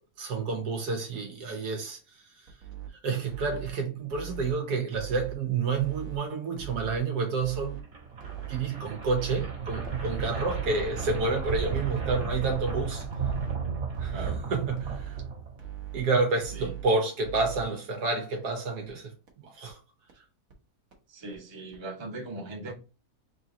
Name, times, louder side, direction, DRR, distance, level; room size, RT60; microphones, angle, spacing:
voice 1, 0.2-2.0 2.4-2.5 3.0-7.8 8.5-13.0 14.0-15.2 15.9-19.8, right 3 dB, 85° right, 1.6 m, -29 dB
sound 1, 2.5-2.9 3.3-3.7 4.1-4.5 4.9-5.3 5.7-6.2 6.6-7.0 7.4-7.8 8.2-8.6 9.0-9.4 9.8-10.3 10.7-11.1 11.5-11.9 12.3-12.7 13.1-13.6 13.9-14.4 14.8-15.2 15.6-16.0 16.4-16.8 17.2-17.6 18.0-18.1 18.5-18.6 18.9-19.0 19.3-19.4 19.7-19.8 20.1-20.2 20.5-20.6 20.9-21.0 21.3-21.4 21.7-21.8, right 13 dB, 65° right, 1.4 m, -40 dB
sound 2, 7.8-15.8, right 5 dB, 50° right, 1.6 m, -34 dB
voice 2, 21.1-22.7, right 2 dB, 25° right, 0.7 m, -39 dB
3.8 x 2.9 x 3.7 m
omnidirectional pair, 1.7 m